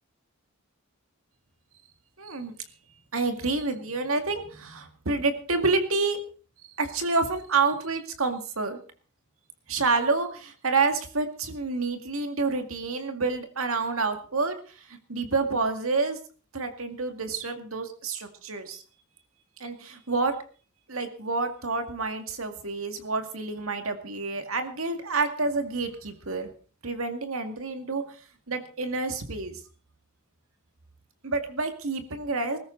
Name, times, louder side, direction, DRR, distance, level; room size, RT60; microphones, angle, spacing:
voice 1, 2.2-2.5 3.1-6.2 6.8-8.8 9.7-14.5 14.9-16.2 16.5-18.8 19.6-20.3 20.9-26.5 26.8-28.0 28.5-29.6 31.2-32.6, right 3 dB, 75° right, 7 dB, 2.2 m, -28 dB
20.5 x 13.5 x 4.0 m, 0.40 s
head